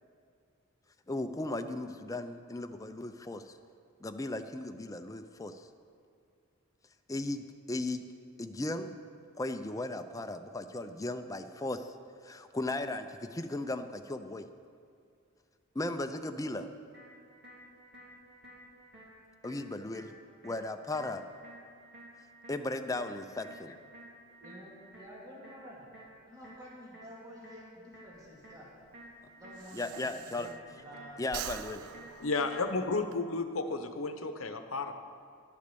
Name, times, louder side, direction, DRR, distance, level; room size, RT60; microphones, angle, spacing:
voice 1, 1.1-3.6 4.0-5.7 7.1-8.0 8.4-8.9 9.4-11.9 12.2-14.5 15.7-16.7 19.4-20.1 20.4-21.2 22.5-23.8 29.7-30.5 31.2-31.8, left 2 dB, 15° left, 8 dB, 0.5 m, -36 dB
sound 1, 16.9-32.9, right 1 dB, 55° right, 2.5 m, -54 dB
voice 2, 24.4-25.9 26.3-28.7 29.4-31.3 31.7-32.1, equal, 20° right, -5 dB, 2.2 m, -50 dB
Breathing, 28.1-30.9 31.2-33.2, right 10 dB, 85° right, 0.4 m, -45 dB
voice 3, 32.2-34.9, left 3 dB, 70° left, 8 dB, 0.9 m, -32 dB
11.5 x 8.4 x 6.9 m, 2.3 s
head